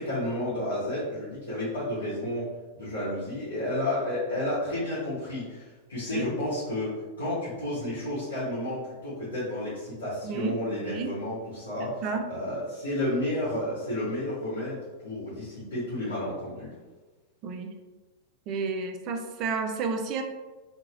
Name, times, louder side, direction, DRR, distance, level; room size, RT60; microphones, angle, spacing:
voice 1, 0.0-6.9 7.2-16.7, left 1 dB, 70° left, -11 dB, 1.1 m, -31 dB
voice 2, 10.2-10.5 10.8-11.1 12.0-12.2 17.4-17.7 18.5-20.2, right 4 dB, 40° right, 4 dB, 0.4 m, -31 dB
2.8 x 2.6 x 2.5 m, 1.2 s
figure-of-eight pair, 90°, 0 cm